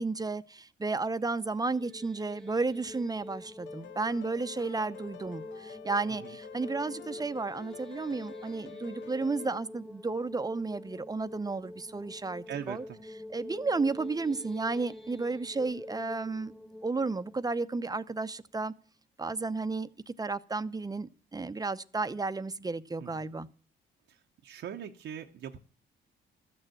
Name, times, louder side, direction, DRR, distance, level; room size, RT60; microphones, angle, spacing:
voice 1, 0.0-12.8 13.3-16.5 16.8-18.7 19.2-23.5, right 3 dB, 20° right, 0.7 m, -33 dB
sound 1, 1.5-18.6, left 1 dB, ahead, 1.3 m, -47 dB
sound 2, 3.7-9.6, left 11 dB, 70° left, 0.7 m, -48 dB
voice 2, 12.5-13.0 23.0-23.1 24.1-25.6, right 9 dB, 65° right, 0.9 m, -41 dB
13.5 x 6.6 x 9.0 m
cardioid pair, 90°, 20 cm